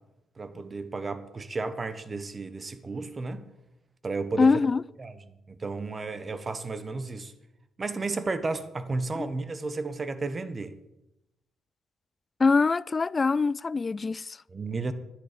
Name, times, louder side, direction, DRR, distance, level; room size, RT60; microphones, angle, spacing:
voice 1, 0.4-3.4 4.0-4.5 5.0-5.2 5.5-7.3 7.8-10.8 14.5-14.9, right 3 dB, 35° right, 1.3 m, -33 dB
voice 2, 4.4-4.8 9.2-9.3 12.4-14.4, left 4 dB, 35° left, 0.3 m, -23 dB
12.0 x 10.0 x 5.3 m
hypercardioid pair, 50°, 0 cm